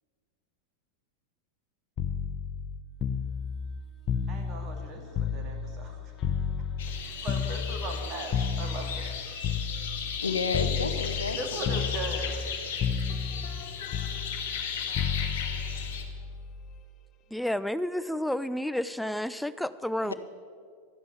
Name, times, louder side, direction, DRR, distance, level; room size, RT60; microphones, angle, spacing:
sound 1, 2.0-5.9 6.2-10.2 10.5-11.4 11.6-12.5 12.8-16.8 18.0-18.2, left 7 dB, 30° left, 0.8 m, -32 dB
voice 1, 4.3-6.1 7.0-9.1 11.4-12.4, right 2 dB, 30° right, 2 dB, 2.4 m, -38 dB
sound 2, 6.8-16.0, left 7 dB, 55° left, 1.7 m, -36 dB
voice 2, 10.2-11.8 20.0-20.1, left 4 dB, 75° left, 9 dB, 0.9 m, -31 dB
voice 3, 17.3-20.1, left 1 dB, ahead, 15 dB, 0.4 m, -30 dB
13.0 x 9.4 x 7.0 m, 2.2 s
figure-of-eight pair, 90°, 0 cm